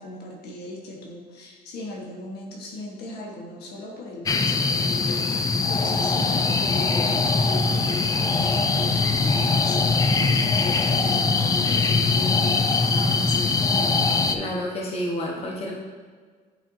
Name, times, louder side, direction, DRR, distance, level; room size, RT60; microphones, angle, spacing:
voice 1, 0.0-13.6 15.4-15.5, left 2 dB, 75° left, -1 dB, 1.2 m, -38 dB
sound 1, 4.3-14.4, left 4 dB, 20° left, 0.4 m, -22 dB
voice 2, 14.3-15.7, left 1 dB, 35° left, -2 dB, 1.1 m, -29 dB
9.0 x 4.4 x 2.6 m, 1.5 s
cardioid pair, 110°, 17 cm